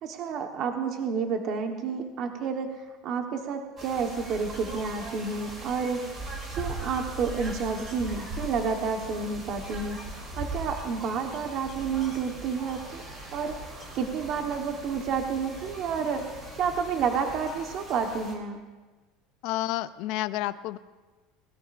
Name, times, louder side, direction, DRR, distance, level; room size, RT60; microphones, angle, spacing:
voice 1, 0.0-2.8 3.0-6.1 6.5-13.0 13.3-13.6 13.9-18.6, right 5 dB, 50° right, 4 dB, 1.2 m, -30 dB
sound 1, 3.8-18.3, right 2 dB, 30° right, 3.2 m, -40 dB
sound 2, 8.9-17.6, right 2 dB, 70° right, 4.8 m, -50 dB
voice 2, 19.4-20.8, left 15 dB, 65° left, 13 dB, 0.5 m, -30 dB
21.0 x 17.5 x 2.6 m, 1.3 s
supercardioid pair, 130°, 0 cm